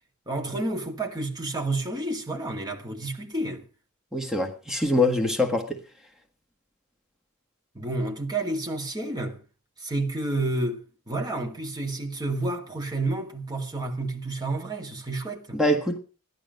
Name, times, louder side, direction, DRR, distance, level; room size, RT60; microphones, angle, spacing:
voice 1, 0.3-3.6 7.7-9.4 9.8-15.6, right 2 dB, 20° right, 2.1 m, -30 dB
voice 2, 4.1-5.8 15.5-16.0, left 1 dB, ahead, 1.4 m, -24 dB
14.0 x 11.5 x 5.3 m
head